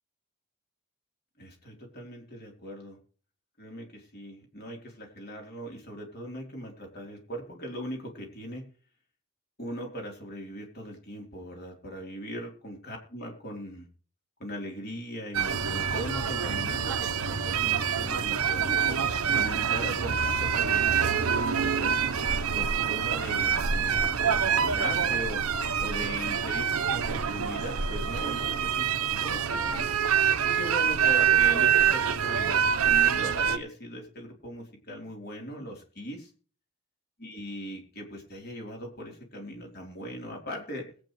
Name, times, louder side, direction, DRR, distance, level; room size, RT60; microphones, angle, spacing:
voice 1, 1.4-3.0 3.6-8.6 9.6-13.9 14.4-21.9 22.5-25.4 25.8-29.9 30.5-36.3 37.2-40.9, equal, 45° left, 1 dB, 3.7 m, -40 dB
sound 1, 15.3-33.6, right 7 dB, 80° right, 0.9 m, -26 dB
21.0 x 8.7 x 3.2 m, 0.43 s
head